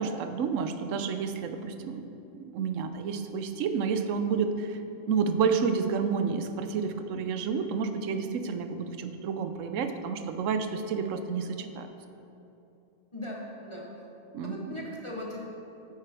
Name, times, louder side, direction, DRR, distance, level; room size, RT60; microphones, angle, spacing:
voice 1, 0.0-2.0 2.3-4.8 5.1-11.9 14.3-14.8, right 5 dB, 75° right, 8 dB, 1.0 m, -30 dB
voice 2, 13.1-13.9 14.4-15.4, left 1 dB, 25° left, -3 dB, 0.9 m, -38 dB
9.4 x 8.1 x 3.4 m, 2.9 s
omnidirectional pair, 1.3 m